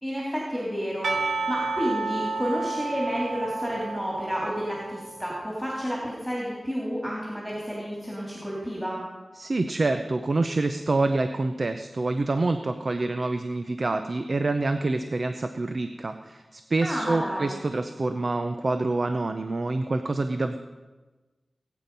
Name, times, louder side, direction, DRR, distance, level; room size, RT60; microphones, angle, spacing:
voice 1, 0.0-9.0 16.8-17.5, equal, 5° right, -4 dB, 3.0 m, -30 dB
Percussion / Church bell, 1.0-5.4, right 3 dB, 85° right, 0.9 m, -31 dB
voice 2, 9.4-20.6, right 2 dB, 50° right, 8 dB, 0.7 m, -27 dB
19.5 x 9.1 x 5.4 m, 1.3 s
wide cardioid pair, 105°, 0 cm